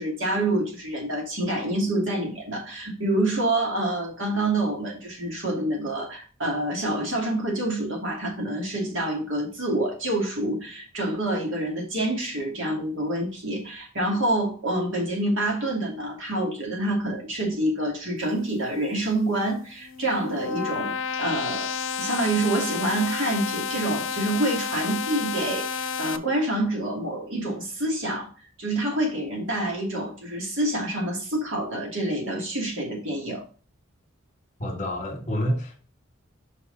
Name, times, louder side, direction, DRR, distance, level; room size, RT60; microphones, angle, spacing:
voice 1, 0.0-21.7 22.0-28.3 28.6-33.4, right 1 dB, 70° right, 2.6 m, -27 dB
sound 1, 19.7-26.2, left 6 dB, 75° left, 0.6 m, -31 dB
voice 2, 34.6-35.8, equal, 35° left, 1.8 m, -28 dB
5.8 x 5.7 x 4.0 m
head